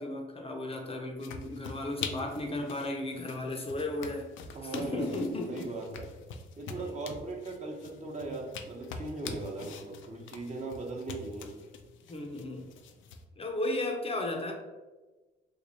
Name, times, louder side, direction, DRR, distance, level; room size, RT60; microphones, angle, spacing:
voice 1, 0.0-4.3 4.6-5.8 6.7-6.9 12.1-12.6 13.4-14.5, left 2 dB, 30° left, 2 dB, 0.6 m, -35 dB
sound 1, 1.2-13.2, left 5 dB, 80° left, 0.4 m, -45 dB
voice 2, 4.5-5.2 5.5-6.1 6.6-11.5, right 3 dB, 35° right, 0 dB, 0.8 m, -39 dB
3.1 x 2.3 x 4.0 m, 1.2 s
cardioid pair, 90°, 20 cm